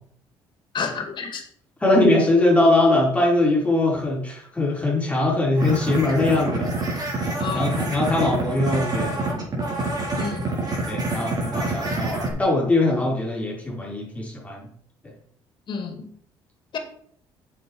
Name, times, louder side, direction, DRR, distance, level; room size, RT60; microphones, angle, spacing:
voice 1, 0.7-1.4 7.4-7.7 10.2-10.5 15.7-16.1 16.7-16.8, left 5 dB, 55° left, 5 dB, 2.5 m, -30 dB
voice 2, 1.8-6.7 7.5-9.2 10.9-14.6, left 2 dB, 15° left, -4 dB, 4.6 m, -21 dB
sound 1, 5.6-12.3, right 2 dB, 45° right, 4.6 m, -27 dB
8.1 x 7.3 x 4.8 m, 0.62 s
supercardioid pair, 75°, 10 cm